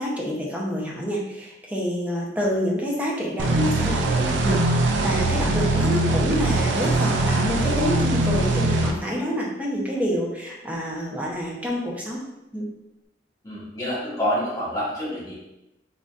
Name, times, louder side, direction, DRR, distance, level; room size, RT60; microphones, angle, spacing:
voice 1, 0.0-4.6 5.0-12.2 12.5-12.7, equal, 10° right, -4 dB, 0.8 m, -27 dB
sound 1, 3.4-8.9, right 2 dB, 80° right, 0.5 m, -22 dB
voice 2, 13.4-15.3, equal, 20° left, -8 dB, 1.5 m, -27 dB
4.0 x 3.8 x 2.5 m, 0.94 s
head